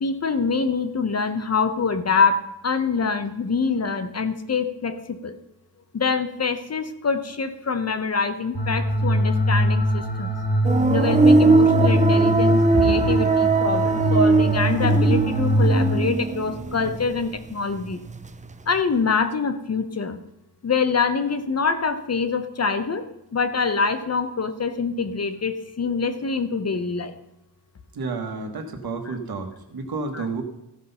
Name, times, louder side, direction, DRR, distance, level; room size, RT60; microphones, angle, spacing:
voice 1, 0.0-5.4 5.9-10.3 10.9-18.0 18.7-20.2 20.6-23.1 23.3-27.2 29.1-29.2 30.1-30.2, left 5 dB, 40° left, 9 dB, 0.7 m, -25 dB
sound 1, 8.5-16.0, equal, 85° left, 3.9 m, -22 dB
sound 2, 10.6-17.5 17.8-18.5, right 4 dB, 20° right, 0.4 m, -20 dB
voice 2, 27.9-30.4, right 4 dB, 65° right, 4 dB, 1.6 m, -31 dB
14.5 x 6.0 x 5.5 m, 0.91 s
wide cardioid pair, 175°, 40 cm